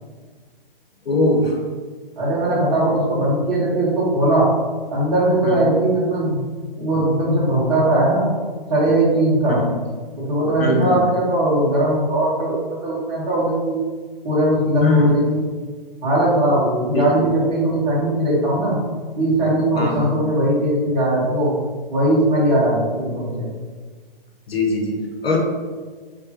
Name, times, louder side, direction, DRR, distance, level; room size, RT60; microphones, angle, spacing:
voice 1, 1.0-1.6 5.4-5.8 9.6-9.7 10.6-11.1 14.8-15.1 16.9-17.1 19.7-20.1 24.5-25.4, left 2 dB, 85° left, 1 dB, 1.0 m, -21 dB
voice 2, 2.2-4.5 4.9-6.4 6.8-8.3 8.7-9.6 10.2-13.8 14.2-15.4 16.0-18.8 19.2-21.5 21.9-23.5, right 1 dB, 20° right, -9 dB, 1.4 m, -19 dB
3.5 x 2.9 x 2.9 m, 1.5 s
hypercardioid pair, 150°, 29 cm